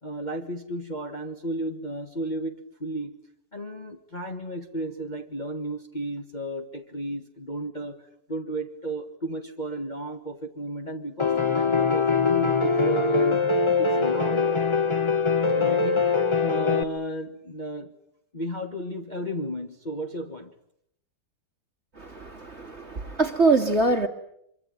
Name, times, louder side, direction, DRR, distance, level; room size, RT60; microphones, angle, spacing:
voice 1, 0.0-3.2 3.5-8.0 8.3-13.4 13.8-14.5 15.5-17.9 18.3-20.5, right 1 dB, 25° left, 1.5 m, -33 dB
Piano, 11.2-16.8, left 4 dB, 45° left, 0.4 m, -22 dB
voice 2, 22.0-24.1, right 3 dB, 30° right, 2.0 m, -23 dB
25.5 x 24.0 x 9.2 m
omnidirectional pair, 2.4 m